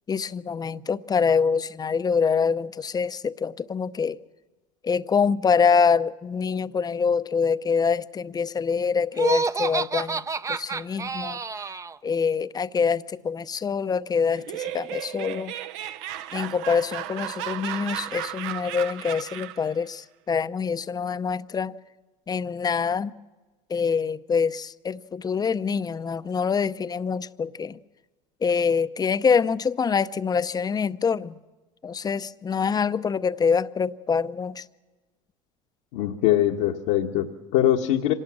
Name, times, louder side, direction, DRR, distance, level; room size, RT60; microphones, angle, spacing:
voice 1, 0.1-4.2 4.8-11.4 12.0-15.5 16.3-21.8 22.3-23.1 23.7-27.8 28.4-31.4 31.8-34.6, left 6 dB, 25° left, 0.7 m, -25 dB
Laughter, 9.1-12.0, right 4 dB, 20° right, 0.6 m, -28 dB
Laughter 2, 14.3-19.7, right 12 dB, 75° right, 0.9 m, -34 dB
voice 2, 35.9-38.1, left 12 dB, 75° left, 1.3 m, -22 dB
25.5 x 18.5 x 6.2 m
hypercardioid pair, 85°, 16 cm